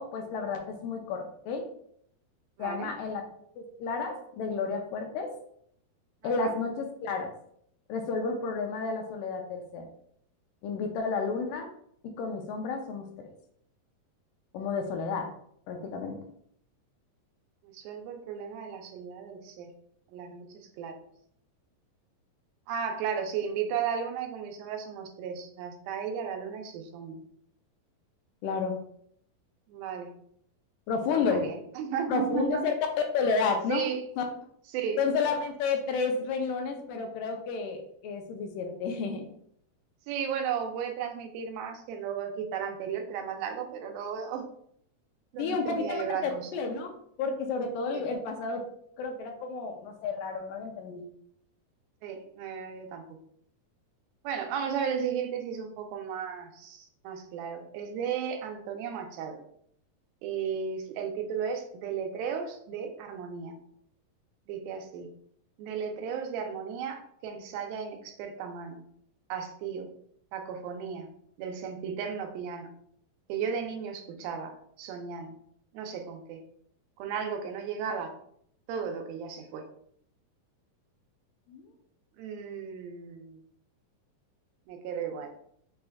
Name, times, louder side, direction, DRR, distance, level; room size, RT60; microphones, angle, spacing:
voice 1, 0.0-1.6 2.6-3.2 3.6-5.3 6.2-7.3 7.9-9.9 10.6-11.7 12.2-13.1 14.5-15.3 15.7-16.2 28.4-28.8 30.9-31.4 32.1-32.8 33.1-33.8 34.2-34.3 35.0-39.3 45.4-46.9 47.2-48.6 49.0-51.1 81.5-81.6, left 4 dB, 80° left, 3 dB, 2.1 m, -31 dB
voice 2, 2.6-2.9 6.2-6.5 17.6-19.7 20.1-21.0 22.7-27.2 29.7-30.1 31.1-32.6 33.7-34.0 34.7-35.0 40.1-44.4 45.3-46.5 47.9-48.0 52.0-53.0 54.2-59.4 60.2-63.6 64.5-65.1 65.6-68.8 69.3-69.9 70.3-71.1 71.4-72.7 73.3-75.3 75.7-76.4 77.0-78.1 78.7-79.7 82.2-83.4 84.7-85.3, right 7 dB, 90° right, 5 dB, 2.5 m, -35 dB
6.0 x 2.3 x 3.4 m, 0.68 s
omnidirectional pair, 4.1 m